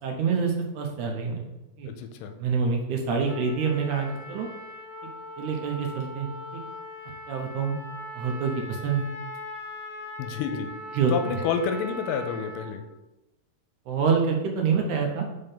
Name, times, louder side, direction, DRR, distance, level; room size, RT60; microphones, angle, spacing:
voice 1, 0.0-1.5 1.8-1.9 2.4-4.5 5.4-6.6 7.3-7.8 8.2-9.0 10.9-11.4 13.9-15.2, right 5 dB, 75° right, 2 dB, 2.0 m, -26 dB
voice 2, 1.9-2.3 10.2-10.7 11.1-12.8, left 6 dB, 85° left, 7 dB, 2.2 m, -29 dB
Trumpet, 3.3-12.8, left 1 dB, 50° left, 1.6 m, -40 dB
5.4 x 3.5 x 5.5 m, 0.98 s
omnidirectional pair, 3.9 m